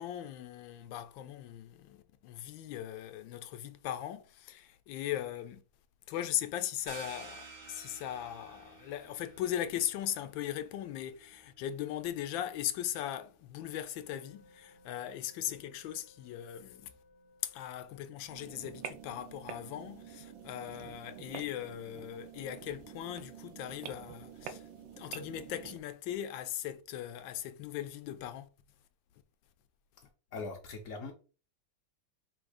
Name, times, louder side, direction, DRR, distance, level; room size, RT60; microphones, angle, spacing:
voice 1, 0.0-5.6 6.1-16.9 17.4-24.7 25.0-28.5, left 11 dB, 85° left, 1.3 m, -39 dB
sound 1, 6.9-12.2, right 4 dB, 70° right, 0.4 m, -52 dB
sound 2, 14.0-21.3, left 2 dB, 45° left, 0.5 m, -64 dB
sound 3, 18.3-25.8, right 8 dB, 90° right, 1.4 m, -47 dB
voice 2, 30.3-31.1, left 3 dB, 60° left, 0.9 m, -40 dB
3.9 x 2.6 x 4.7 m
omnidirectional pair, 2.1 m